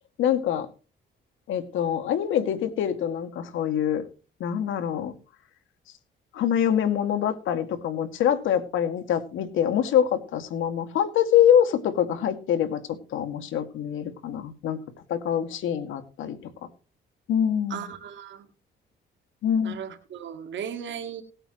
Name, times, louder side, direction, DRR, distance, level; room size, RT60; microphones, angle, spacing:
voice 1, 0.2-0.7 1.5-4.0 4.4-5.1 6.3-12.8 13.1-14.8 15.1-16.4 17.3-17.9 19.4-19.8, left 9 dB, 85° left, 8 dB, 2.3 m, -24 dB
voice 2, 17.7-18.5 19.6-21.2, right 8 dB, 70° right, 7 dB, 2.1 m, -36 dB
19.0 x 9.0 x 3.1 m, 0.36 s
cardioid pair, 90°, 20 cm